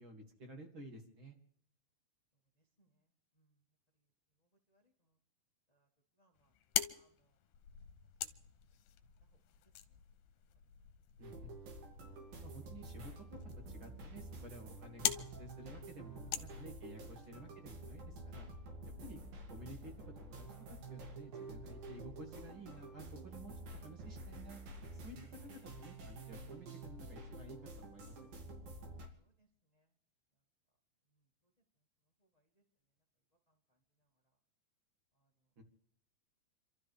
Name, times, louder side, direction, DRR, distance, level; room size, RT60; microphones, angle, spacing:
voice 1, 0.0-1.4 11.2-11.5 12.4-13.2 13.7-18.5 19.0-19.2 19.5-19.9 20.2-20.5 20.9-24.6 25.0-25.2 25.4-25.5 25.8-28.1 35.6-35.7, right 1 dB, 40° right, 2 dB, 2.4 m, -53 dB
voice 2, 2.6-3.6 4.4-5.2 5.7-5.9 6.2-7.4 9.2-10.0 16.2-16.6 29.2-29.9 31.1-31.5 32.2-32.6 33.5-34.4 35.1-35.3, right 1 dB, 25° left, 1 dB, 0.9 m, -76 dB
sound 1, 6.4-17.3, left 12 dB, 80° left, 2.5 m, -44 dB
sound 2, 11.2-29.1, right 2 dB, 75° right, 4.1 m, -49 dB
29.5 x 13.0 x 3.4 m, 0.65 s
omnidirectional pair, 4.0 m